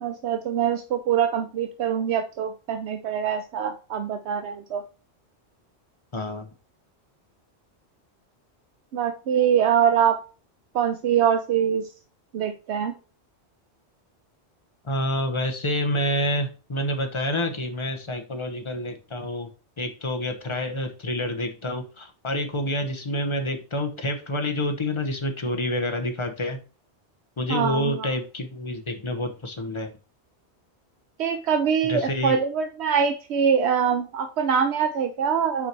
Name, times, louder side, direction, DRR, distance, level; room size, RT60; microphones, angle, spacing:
voice 1, 0.0-4.8 8.9-10.2 10.7-11.9 12.3-12.9 27.5-28.1 31.2-35.7, right 8 dB, 75° right, 7 dB, 0.9 m, -24 dB
voice 2, 6.1-6.5 14.8-19.5 19.8-26.6 27.4-29.9 31.8-32.4, left 1 dB, 30° left, 5 dB, 1.0 m, -28 dB
5.9 x 4.6 x 4.5 m, 0.35 s
omnidirectional pair, 1.1 m